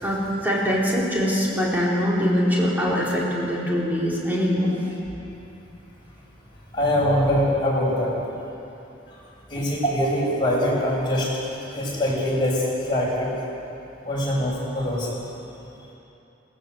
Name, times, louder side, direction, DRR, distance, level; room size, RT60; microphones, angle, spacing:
voice 1, 0.0-4.7, equal, 10° right, -6 dB, 4.5 m, -23 dB
voice 2, 6.7-8.1 9.5-11.3 11.7-13.3 14.0-15.1, equal, 25° left, -5 dB, 6.7 m, -23 dB
20.0 x 19.0 x 8.0 m, 2.8 s
head